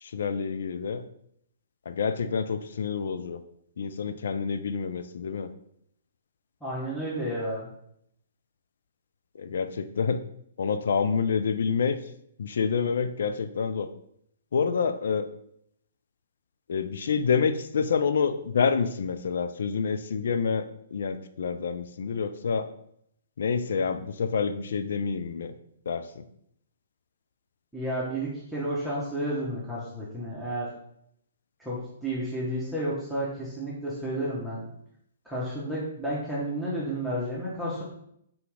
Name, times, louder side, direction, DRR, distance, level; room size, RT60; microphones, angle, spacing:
voice 1, 0.0-1.0 1.9-3.4 3.8-5.5 9.3-10.2 10.6-12.0 12.4-13.9 14.5-15.3 16.7-22.7 23.4-25.5 25.9-26.2, left 6 dB, 55° left, 10 dB, 0.3 m, -28 dB
voice 2, 6.6-7.7 27.7-30.7 31.6-34.7 35.2-37.8, right 1 dB, ahead, -9 dB, 0.9 m, -31 dB
3.9 x 2.8 x 3.6 m, 0.72 s
figure-of-eight pair, 120°, 0 cm